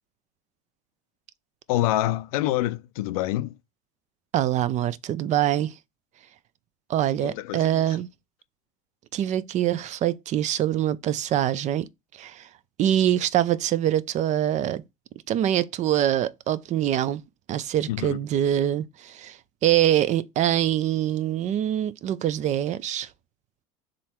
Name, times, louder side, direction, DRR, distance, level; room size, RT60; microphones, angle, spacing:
voice 1, 1.7-3.6 7.2-8.0 17.9-18.2, left 15 dB, 80° left, 0.5 m, -27 dB
voice 2, 4.3-5.7 6.9-8.1 9.1-11.9 12.2-12.4 12.8-14.8 15.3-17.2 17.5-19.4 19.6-23.1, right 11 dB, 40° right, 0.5 m, -24 dB
3.8 x 3.2 x 4.3 m
supercardioid pair, 100°, 18 cm